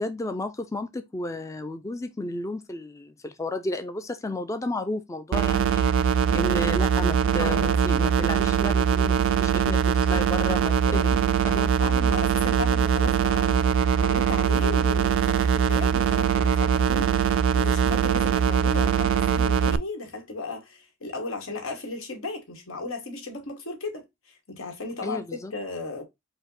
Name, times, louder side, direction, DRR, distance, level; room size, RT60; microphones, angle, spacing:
voice 1, 0.0-11.1 11.4-11.7 25.0-25.5, left 2 dB, 15° left, 0.3 m, -33 dB
sound 1, 5.3-19.8, right 7 dB, 65° right, 0.3 m, -22 dB
voice 2, 7.4-7.8 10.6-25.2 25.5-26.0, left 3 dB, 85° left, 1.3 m, -35 dB
5.2 x 2.1 x 3.9 m
head